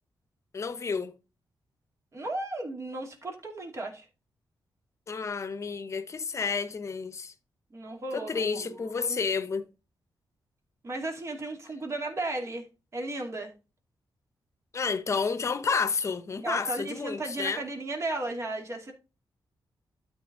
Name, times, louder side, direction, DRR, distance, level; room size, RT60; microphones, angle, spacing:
voice 1, 0.5-1.1 5.1-7.3 8.1-9.6 14.7-17.6, left 5 dB, 35° left, 1.0 m, -30 dB
voice 2, 2.1-4.1 7.7-9.2 10.8-12.6 12.9-13.5 16.4-18.9, right 2 dB, 35° right, 2.5 m, -35 dB
12.5 x 4.5 x 3.9 m
wide cardioid pair, 150°, 8 cm